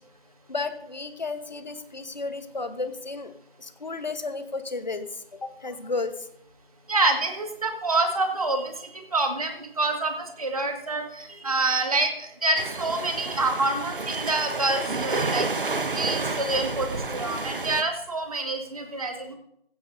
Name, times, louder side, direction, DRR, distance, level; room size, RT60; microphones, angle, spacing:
voice 1, 0.5-3.3 3.6-6.3, left 3 dB, 45° left, 10 dB, 1.2 m, -33 dB
voice 2, 6.9-15.5 15.9-19.3, right 2 dB, 35° right, 4 dB, 1.9 m, -27 dB
sound 1, 12.6-17.8, right 3 dB, 55° right, 1.3 m, -30 dB
16.0 x 15.5 x 2.7 m, 0.75 s
figure-of-eight pair, 170°, 31 cm